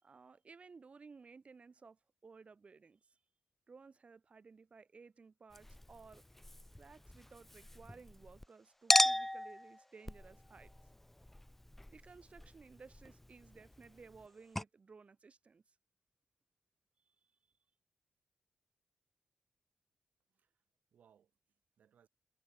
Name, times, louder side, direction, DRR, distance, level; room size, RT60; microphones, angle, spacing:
voice 1, 0.0-3.2 3.7-6.2 6.8-10.7 11.9-15.8 17.1-17.2, right 4 dB, 50° right, 3.9 m, -58 dB
Chink clink, 5.5-8.5 8.9-14.3 14.6-14.7, left 1 dB, 10° left, 0.4 m, -37 dB
voice 2, 20.3-22.1, right 8 dB, 80° right, 7.2 m, -71 dB
cardioid pair, 55°, 3 cm